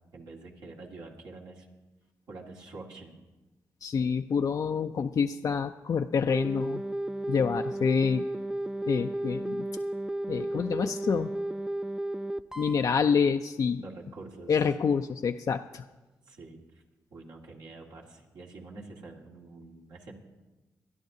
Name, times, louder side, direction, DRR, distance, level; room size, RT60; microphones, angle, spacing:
voice 1, 0.1-1.7 2.3-3.2 13.8-14.6 16.3-16.8 17.1-20.1, right 3 dB, 75° right, -1 dB, 1.9 m, -46 dB
voice 2, 3.8-6.8 7.3-8.3 8.9-9.7 10.3-11.3 12.6-13.8 14.5-15.8, left 6 dB, 55° left, 7 dB, 0.4 m, -27 dB
sound 1, 6.3-12.9 14.6-14.8, right 1 dB, 5° right, 0.4 m, -33 dB
24.5 x 10.5 x 2.7 m, 1.1 s
supercardioid pair, 50°, 7 cm